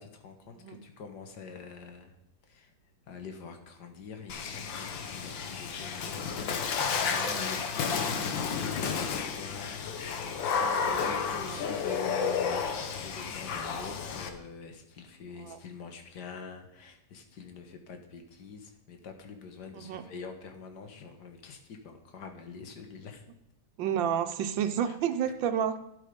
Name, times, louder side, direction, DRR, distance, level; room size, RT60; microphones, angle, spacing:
voice 1, 0.0-2.1 2.5-2.7 3.1-9.8 10.2-23.2 24.9-25.0, left 5 dB, 65° left, 5 dB, 2.0 m, -45 dB
Water / Splash splatter, 4.3-14.3, left 6 dB, 85° left, 1.8 m, -32 dB
voice 2, 7.2-7.6 10.7-11.1 11.3-11.7 15.4-15.6 19.7-20.0 23.8-25.8, right 8 dB, 85° right, 8 dB, 1.5 m, -31 dB
12.0 x 11.0 x 5.2 m, 0.81 s
omnidirectional pair, 2.0 m